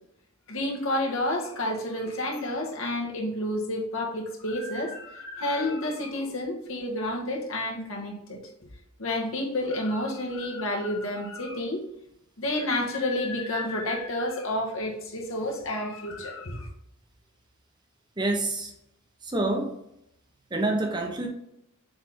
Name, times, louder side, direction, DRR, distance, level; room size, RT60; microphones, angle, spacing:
voice 1, 0.5-8.7 9.0-11.9 12.4-16.7, left 1 dB, 65° left, -1 dB, 1.7 m, -30 dB
voice 2, 18.2-18.7 19.2-19.8 20.5-21.3, right 2 dB, 20° right, 3 dB, 0.8 m, -27 dB
7.1 x 4.1 x 3.7 m, 0.77 s
head